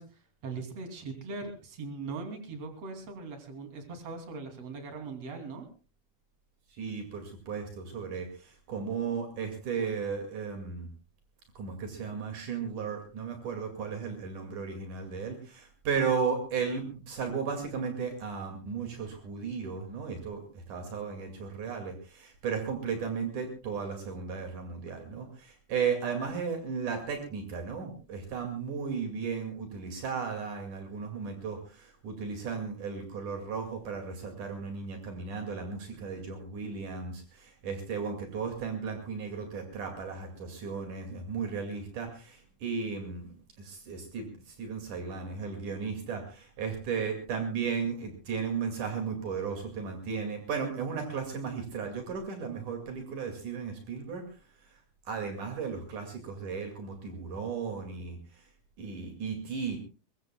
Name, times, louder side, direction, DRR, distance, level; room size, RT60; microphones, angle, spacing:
voice 1, 0.0-5.7, right 4 dB, 55° right, 5 dB, 3.9 m, -40 dB
voice 2, 6.7-10.9 11.6-54.2 54.7-54.8 55.1-58.5 58.8-59.8, right 6 dB, 75° right, 4 dB, 3.7 m, -35 dB
22.5 x 22.0 x 2.3 m, 0.33 s
omnidirectional pair, 3.6 m